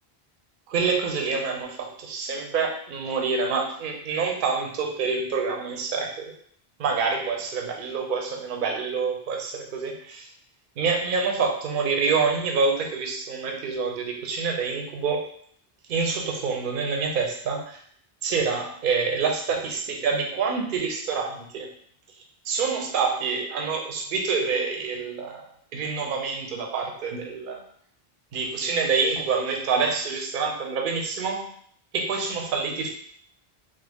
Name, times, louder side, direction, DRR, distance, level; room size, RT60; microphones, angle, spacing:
voice 1, 0.7-6.2 6.8-10.3 10.8-15.2 15.9-17.8 18.2-21.7 22.5-25.4 25.7-27.6 28.3-31.5 31.9-32.9, right 5 dB, 60° right, 1 dB, 0.7 m, -27 dB
3.0 x 2.0 x 3.4 m, 0.63 s
omnidirectional pair, 1.1 m